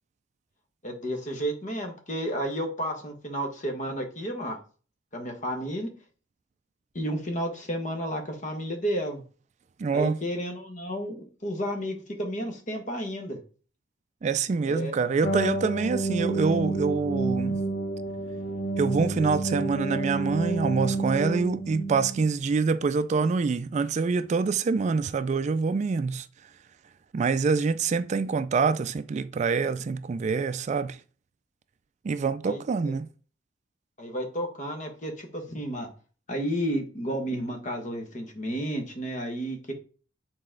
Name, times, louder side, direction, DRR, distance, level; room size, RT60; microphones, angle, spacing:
voice 1, 0.8-4.6 5.1-5.9 6.9-9.2 9.9-13.4 14.7-14.9 32.4-32.6 34.0-35.9 36.3-39.7, equal, 40° left, 1.4 m, -32 dB
voice 2, 9.8-10.2 14.2-17.6 18.8-26.3 27.1-31.0 32.0-33.1, right 4 dB, 40° right, 0.3 m, -26 dB
sound 1, 15.2-22.3, right 2 dB, 70° left, 1.2 m, -29 dB
6.9 x 4.2 x 3.8 m
head